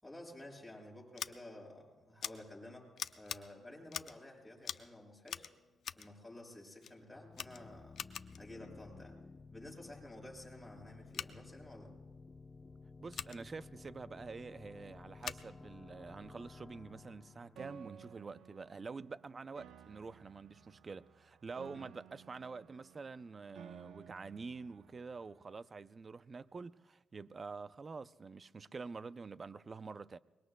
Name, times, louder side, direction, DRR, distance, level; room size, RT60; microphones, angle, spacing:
voice 1, 0.0-2.9 3.1-5.5 6.0-8.0 8.3-9.2 9.5-11.9 21.7-21.8, left 1 dB, 5° left, 6.1 m, -52 dB
Scissors, 1.1-1.3 2.2-2.3 3.0-3.4 3.9-4.2 4.6-4.9 5.3-6.1 6.8-7.0 7.3-8.4 11.1-11.3 13.1-13.4 15.2-15.4, left 8 dB, 70° left, 0.6 m, -43 dB
sound 1, 7.2-18.7, left 4 dB, 25° left, 0.8 m, -55 dB
voice 2, 13.0-30.2, right 4 dB, 35° right, 0.4 m, -47 dB
Piano, 17.6-25.5, right 8 dB, 90° right, 0.7 m, -57 dB
24.5 x 21.5 x 2.2 m
cardioid pair, 100°, 0 cm